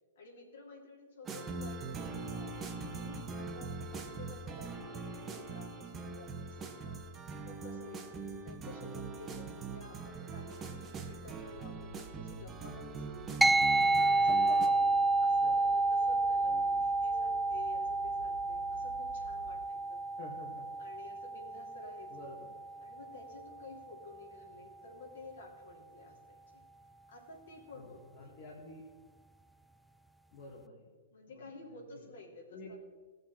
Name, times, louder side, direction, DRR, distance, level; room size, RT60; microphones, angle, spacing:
voice 1, 0.1-2.6 2.9-7.0 7.4-13.4 13.9-14.3 14.6-14.7 15.2-20.0 20.8-22.4 22.8-26.4 27.1-28.3 31.1-32.8, left 2 dB, 75° left, -2 dB, 3.4 m, -52 dB
sound 1, 1.2-14.7, right 4 dB, 20° right, 1.5 m, -42 dB
sound 2, 11.1-19.6, right 4 dB, 80° right, 1.6 m, -53 dB
sound 3, 13.4-23.1, right 2 dB, ahead, 0.3 m, -30 dB
voice 2, 14.2-15.6 16.4-16.9 20.2-20.7 22.1-22.6 27.7-28.8 30.3-30.9 31.3-31.4 31.7-32.1 32.5-32.8, left 2 dB, 50° left, -3 dB, 2.4 m, -50 dB
18.0 x 6.4 x 4.4 m, 1.4 s
hypercardioid pair, 110°, 0 cm